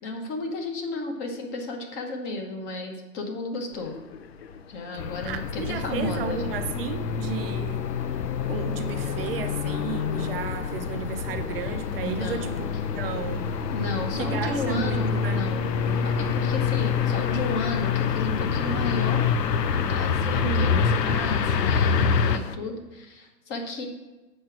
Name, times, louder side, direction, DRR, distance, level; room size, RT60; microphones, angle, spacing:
voice 1, 0.0-4.0 4.7-6.6 12.0-12.7 13.7-19.3 19.7-23.8, left 2 dB, 20° left, 3 dB, 1.0 m, -33 dB
sound 1, 3.7-22.6, left 7 dB, 40° left, 0.4 m, -41 dB
sound 2, 5.0-22.4, left 6 dB, 75° left, 0.7 m, -26 dB
voice 2, 5.2-7.9 8.4-12.7 12.9-13.5 14.2-15.4 20.4-20.9, right 7 dB, 35° right, 7 dB, 0.6 m, -33 dB
6.6 x 4.6 x 5.9 m, 1.1 s
hypercardioid pair, 125°, 50 cm